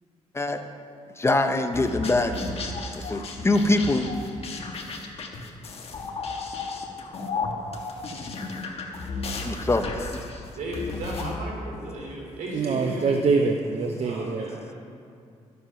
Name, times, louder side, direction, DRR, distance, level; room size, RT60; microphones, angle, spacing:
voice 1, 1.2-2.4 3.0-4.0 9.4-10.2, left 2 dB, 20° left, 6 dB, 0.7 m, -23 dB
sound 1, 1.7-11.3, left 3 dB, 50° left, 1.4 m, -34 dB
voice 2, 10.5-13.2 14.0-14.7, right 1 dB, 80° right, -2 dB, 3.1 m, -35 dB
voice 3, 12.5-14.5, right 4 dB, 55° right, 4 dB, 0.7 m, -24 dB
13.0 x 7.8 x 5.7 m, 2.3 s
cardioid pair, 105°, 13 cm